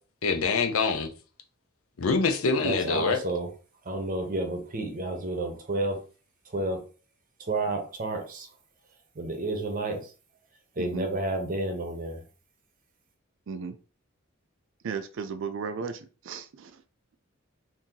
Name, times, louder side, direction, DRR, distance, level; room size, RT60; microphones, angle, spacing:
voice 1, 0.2-1.1 2.0-3.2, left 4 dB, 75° left, 0.6 m, -25 dB
voice 2, 2.6-3.5 3.8-6.0 6.4-6.8 7.4-8.5 9.1-10.1 10.7-12.3, right 2 dB, 40° right, 0.8 m, -31 dB
voice 3, 14.8-16.8, right 5 dB, 60° right, 0.4 m, -35 dB
2.8 x 2.7 x 3.7 m
head